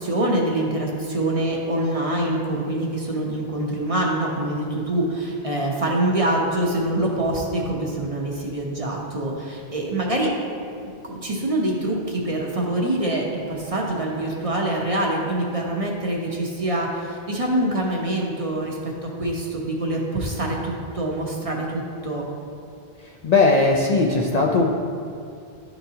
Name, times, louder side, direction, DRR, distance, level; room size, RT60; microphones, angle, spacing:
voice 1, 0.0-10.3 10.8-22.3, right 1 dB, 40° right, -2 dB, 0.7 m, -25 dB
voice 2, 23.2-24.7, left 3 dB, 50° left, -1 dB, 0.5 m, -18 dB
11.0 x 4.0 x 2.8 m, 2.4 s
omnidirectional pair, 1.1 m